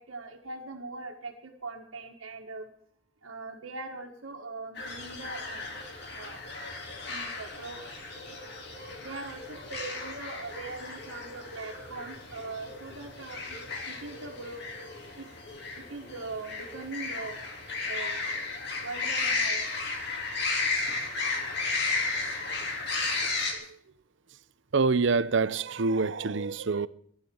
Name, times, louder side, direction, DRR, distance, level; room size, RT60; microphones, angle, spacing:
voice 1, 0.0-2.7 3.2-5.7 6.1-6.4 7.1-8.4 9.0-13.6 13.9-14.7 15.2-15.3 15.7-17.4 17.8-18.3 18.7-19.8, right 3 dB, 85° right, 1.7 m, -41 dB
sound 1, 4.8-23.5, left 3 dB, 55° left, 3.1 m, -34 dB
voice 2, 24.7-26.9, right 4 dB, 60° right, 0.6 m, -26 dB
15.0 x 11.5 x 7.1 m
head